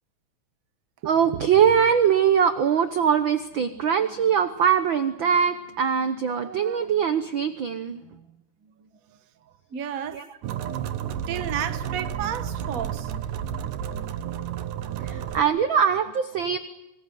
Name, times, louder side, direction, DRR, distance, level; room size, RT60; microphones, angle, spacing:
voice 1, 1.0-8.0 10.1-10.3 15.0-16.6, right 7 dB, 65° right, 1.2 m, -22 dB
voice 2, 9.7-10.6 11.3-13.1 15.1-15.2, right 9 dB, 45° right, 1.2 m, -32 dB
sound 1, 10.4-15.4, right 9 dB, 85° right, 2.9 m, -31 dB
27.0 x 24.5 x 7.7 m
omnidirectional pair, 3.6 m